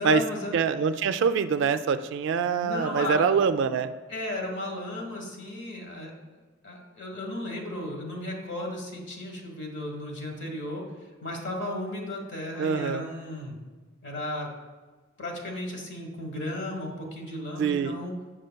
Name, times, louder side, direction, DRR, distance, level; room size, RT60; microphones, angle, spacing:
voice 1, 0.0-0.6 2.6-3.3 4.1-6.2 6.6-10.8 11.2-13.6 14.0-14.5 15.2-18.1, left 1 dB, 65° left, 1 dB, 1.3 m, -34 dB
voice 2, 0.5-3.9 12.6-13.1 17.6-18.0, right 6 dB, 65° right, 11 dB, 0.3 m, -24 dB
7.4 x 6.4 x 2.2 m, 1.3 s
head